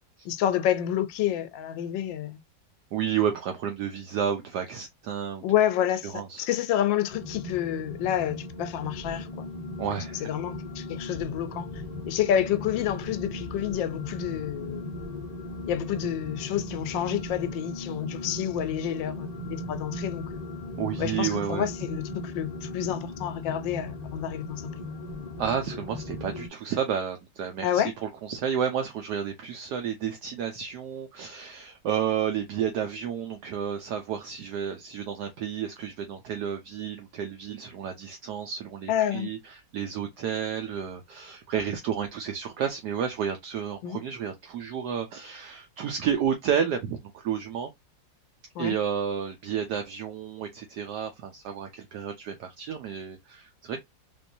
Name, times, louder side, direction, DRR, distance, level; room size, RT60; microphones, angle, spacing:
voice 1, 0.2-2.4 5.4-9.5 10.2-14.8 15.7-20.3 21.0-24.9 27.6-27.9 38.9-39.3 43.8-44.0 48.5-48.8, left 10 dB, 80° left, 1.3 m, -29 dB
voice 2, 2.9-5.4 6.0-6.5 9.8-10.2 20.8-21.7 25.4-47.7 48.6-53.8, right 8 dB, 70° right, 1.1 m, -31 dB
sound 1, 7.1-26.5, left 2 dB, 35° left, 0.6 m, -37 dB
3.5 x 3.0 x 2.6 m
omnidirectional pair, 2.0 m